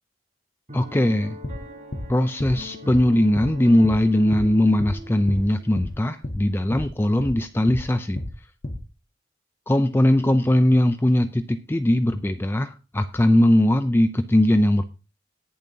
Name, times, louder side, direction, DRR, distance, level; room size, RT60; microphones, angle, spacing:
voice 1, 0.7-1.4 2.1-8.2 9.7-14.8, left 1 dB, 10° left, 9 dB, 0.4 m, -20 dB
Piano, 0.7-6.0, equal, 40° right, 7.6 m, -42 dB
sound 1, 1.4-1.6 1.9-2.1 2.4-2.6 2.9-3.0 3.3-3.5 3.8-4.0 4.3-4.5 4.8-5.0 5.3-5.4 5.8-5.9 6.2-6.4 6.7-6.9 7.2-7.4 7.7-7.8 8.2-8.3 8.6-8.8, left 1 dB, 45° left, 1.3 m, -31 dB
18.5 x 7.2 x 2.8 m, 0.30 s
head